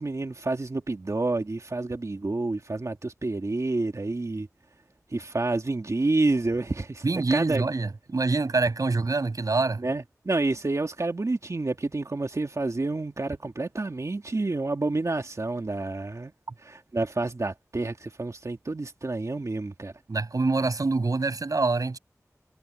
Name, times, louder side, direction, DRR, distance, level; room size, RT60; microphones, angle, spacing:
voice 1, 0.0-4.5 5.1-7.6 9.8-16.3 16.6-19.9, right 2 dB, 60° right, 2.4 m, -29 dB
voice 2, 7.0-9.8 20.1-22.0, right 3 dB, 80° right, 6.4 m, -25 dB
wide cardioid pair, 45°, 6 cm